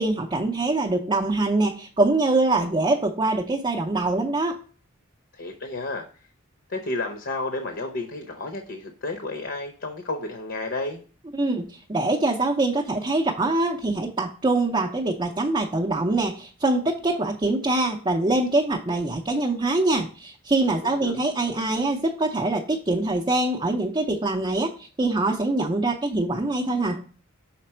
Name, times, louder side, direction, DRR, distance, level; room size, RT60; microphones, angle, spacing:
voice 1, 0.0-4.6 11.3-27.0, right 2 dB, 20° right, 1 dB, 0.5 m, -24 dB
voice 2, 5.3-6.0 6.7-11.0 21.0-21.2, left 2 dB, 55° left, 5 dB, 0.7 m, -31 dB
5.8 x 4.2 x 4.3 m, 0.41 s
head